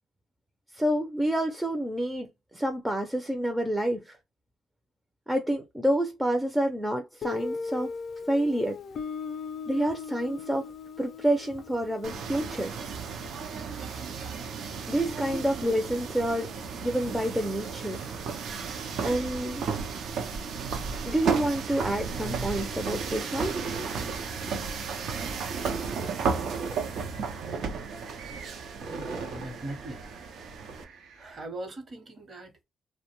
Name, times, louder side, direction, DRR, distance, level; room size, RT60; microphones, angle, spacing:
voice 1, 0.7-4.1 5.3-7.9 8.3-8.8 9.7-10.7 11.0-12.7 14.9-16.5 16.8-18.0 19.0-19.6 21.1-23.6, right 1 dB, 5° right, 0.4 m, -28 dB
Guitar, 7.2-13.9, left 5 dB, 55° left, 0.4 m, -39 dB
sound 1, 12.0-30.8, right 5 dB, 70° right, 0.5 m, -34 dB
sound 2, 21.7-31.5, right 4 dB, 90° right, 0.8 m, -41 dB
voice 2, 28.9-30.0 31.1-32.6, right 1 dB, 40° right, 0.9 m, -40 dB
2.5 x 2.1 x 2.9 m
cardioid pair, 90°, 0 cm